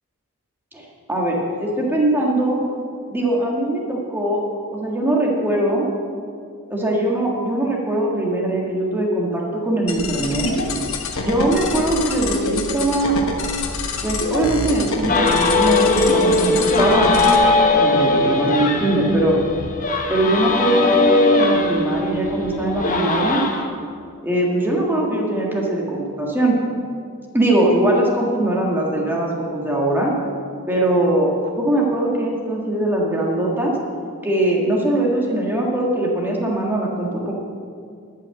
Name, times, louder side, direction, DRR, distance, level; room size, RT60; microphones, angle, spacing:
voice 1, 0.7-2.6 3.1-4.4 4.7-5.9 6.7-10.5 11.2-13.2 14.0-17.2 17.7-19.4 20.1-23.4 24.2-26.6 27.3-30.1 30.7-33.7 34.2-37.3, right 1 dB, 10° right, -3 dB, 1.7 m, -21 dB
sound 1, 9.9-17.4, left 3 dB, 65° left, 1.1 m, -26 dB
sound 2, 15.1-23.6, left 2 dB, 35° left, 0.9 m, -19 dB
12.5 x 5.8 x 7.8 m, 2.3 s
head